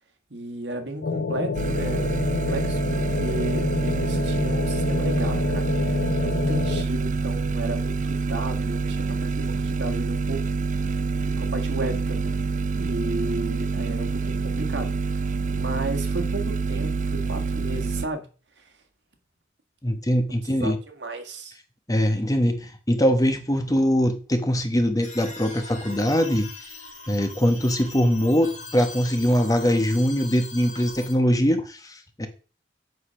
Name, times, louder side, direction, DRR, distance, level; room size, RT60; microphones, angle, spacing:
voice 1, 0.3-5.7 6.2-10.5 11.4-12.4 12.7-14.9 15.4-18.3 20.5-21.6, right 2 dB, 80° right, 1.7 m, -33 dB
sound 1, 1.0-6.8, left 4 dB, 85° left, 0.7 m, -28 dB
sound 2, 1.5-18.1, right 4 dB, 45° right, 0.4 m, -26 dB
voice 2, 19.8-20.8 21.9-26.5 27.1-32.3, equal, 20° left, 1.0 m, -22 dB
sound 3, 25.0-31.1, left 3 dB, 45° left, 2.0 m, -41 dB
8.0 x 5.0 x 5.7 m
head